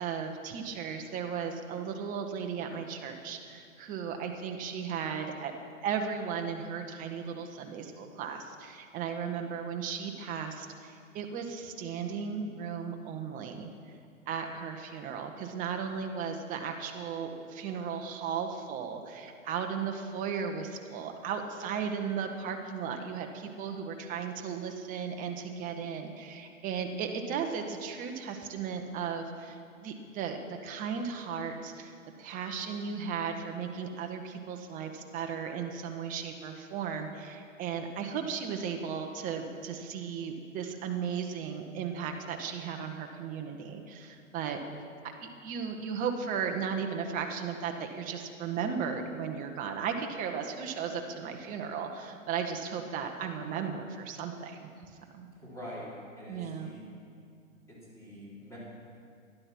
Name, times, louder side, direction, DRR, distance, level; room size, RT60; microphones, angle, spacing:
voice 1, 0.0-5.5 5.8-13.7 14.3-29.6 29.8-44.6 45.2-54.7 55.1-55.3 56.3-56.7, right 6 dB, 20° right, 4 dB, 1.0 m, -36 dB
voice 2, 55.4-55.9 56.2-56.8 57.7-58.6, left 1 dB, 5° left, -8 dB, 4.2 m, -45 dB
12.0 x 11.5 x 5.9 m, 2.3 s
hypercardioid pair, 135°, 40 cm